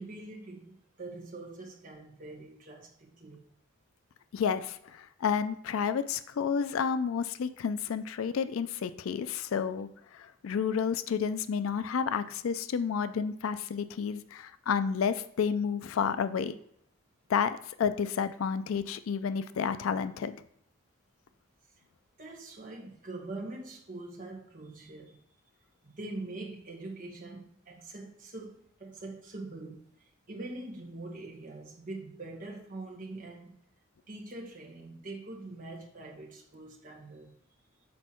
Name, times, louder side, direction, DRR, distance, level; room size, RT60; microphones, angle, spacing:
voice 1, 0.0-3.4 22.2-25.2 25.8-33.6 34.1-37.4, right 2 dB, 40° right, 1.3 m, -43 dB
voice 2, 4.3-16.6 17.3-20.3, left 6 dB, 80° left, 0.4 m, -31 dB
6.3 x 4.5 x 4.4 m
head